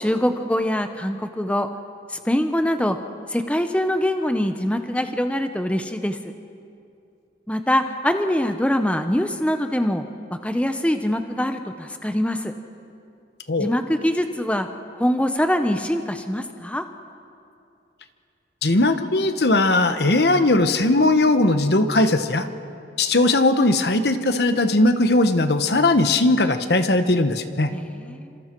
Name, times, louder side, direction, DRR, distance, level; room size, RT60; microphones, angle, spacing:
voice 1, 0.0-1.7 2.1-3.0 3.3-6.2 7.5-10.0 10.4-12.5 13.6-14.7 15.0-16.9 27.7-28.4, left 1 dB, 5° left, 7 dB, 0.8 m, -23 dB
voice 2, 18.6-22.5 23.0-27.7, left 2 dB, 65° left, 9 dB, 1.2 m, -19 dB
29.5 x 26.5 x 4.6 m, 2.5 s
head